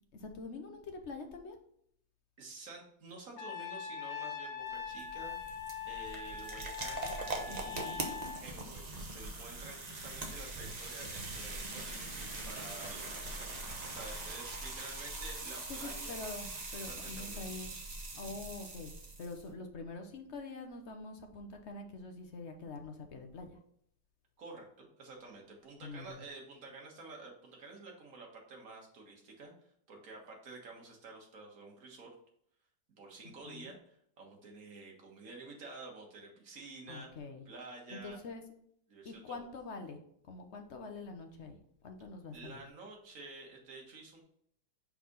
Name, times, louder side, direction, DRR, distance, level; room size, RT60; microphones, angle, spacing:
voice 1, 0.1-1.6 7.5-8.0 15.7-17.7 18.1-18.9 19.2-23.6 25.8-26.2 33.2-33.7 36.9-37.4 37.9-38.4 39.0-40.0 40.3-42.6, left 3 dB, 50° left, 5 dB, 1.0 m, -45 dB
voice 2, 2.4-13.1 13.4-13.5 13.8-16.2 16.7-17.7 24.4-29.5 29.9-32.1 32.9-37.1 37.5-38.2 38.9-39.5 42.3-44.2, right 3 dB, 55° right, 0 dB, 1.9 m, -50 dB
Trumpet, 3.4-8.4, left 7 dB, 70° left, 1.4 m, -42 dB
sound 1, 4.6-19.5, right 2 dB, 30° right, 0.9 m, -42 dB
5.9 x 4.7 x 3.9 m, 0.69 s
omnidirectional pair, 1.8 m